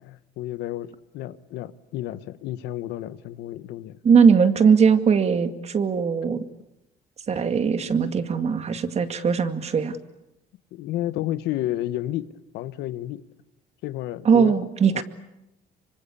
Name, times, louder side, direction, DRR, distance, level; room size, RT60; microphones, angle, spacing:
voice 1, 0.0-4.0 10.7-13.2 13.8-14.6 14.9-15.0, left 14 dB, 85° left, 1.3 m, -31 dB
voice 2, 4.0-6.4 7.3-10.0 14.3-15.0, right 6 dB, 40° right, 2.2 m, -20 dB
26.0 x 25.0 x 8.5 m
cardioid pair, 110°, 17 cm